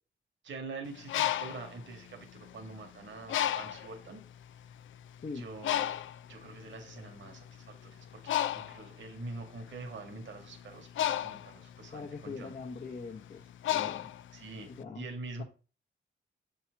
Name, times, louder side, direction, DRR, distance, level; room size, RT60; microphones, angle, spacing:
voice 1, 0.4-4.2 5.3-6.0 6.3-12.6 14.3-14.7 14.9-15.4, right 3 dB, 70° right, 1.8 m, -45 dB
Bird, 0.9-2.7 3.3-4.0 4.6-4.8 5.0-14.8, left 12 dB, 85° left, 0.4 m, -34 dB
voice 2, 11.9-14.1 14.7-15.1, left 4 dB, 45° left, 1.0 m, -42 dB
7.3 x 4.5 x 4.6 m
cardioid pair, 85°, 20 cm